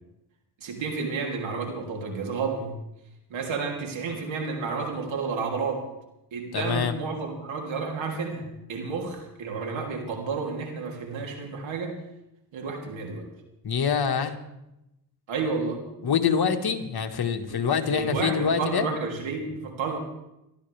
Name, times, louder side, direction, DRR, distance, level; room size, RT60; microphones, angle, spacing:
voice 1, 0.6-2.8 3.3-5.9 6.3-11.9 12.5-13.3 15.3-15.8 17.5-20.0, right 4 dB, 80° right, 1 dB, 3.1 m, -31 dB
voice 2, 6.5-7.0 13.6-14.3 16.0-18.9, left 6 dB, 55° left, 5 dB, 1.7 m, -25 dB
22.0 x 13.0 x 3.5 m, 0.90 s
cardioid pair, 65°, 46 cm